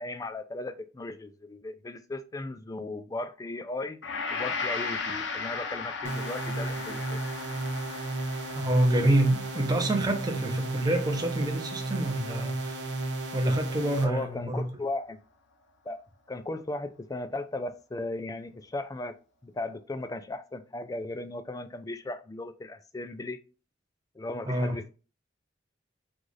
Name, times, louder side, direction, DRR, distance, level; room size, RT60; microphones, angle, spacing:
voice 1, 0.0-4.0 4.3-7.2 14.0-15.2 15.9-16.0 16.3-19.1 19.4-23.4 24.2-24.9, left 2 dB, 20° left, 0.3 m, -36 dB
Gong, 4.0-12.4 12.8-13.0, left 4 dB, 75° left, 0.7 m, -37 dB
sound 1, 6.0-14.0, right 2 dB, 85° right, 1.0 m, -33 dB
voice 2, 8.6-12.8 13.3-14.7 24.4-24.8, right 1 dB, 20° right, 0.7 m, -27 dB
4.8 x 2.4 x 3.9 m
head